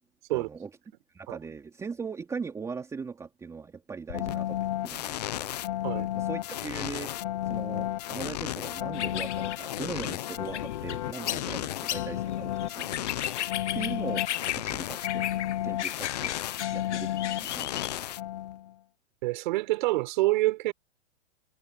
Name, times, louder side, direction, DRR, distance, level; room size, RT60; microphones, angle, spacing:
voice 1, 0.3-0.7 1.1-5.5 6.1-7.1 7.5-13.1 13.7-14.3 14.6-15.3 15.6-16.4 16.7-18.1, right 5 dB, 10° right, 3.9 m, -40 dB
sound 1, 4.1-18.7, left 13 dB, 35° left, 0.6 m, -33 dB
sound 2, 8.9-18.0, left 11 dB, 65° left, 1.4 m, -36 dB
voice 2, 19.2-20.7, right 20 dB, 40° right, 5.3 m, -26 dB
hypercardioid pair, 165°, 38 cm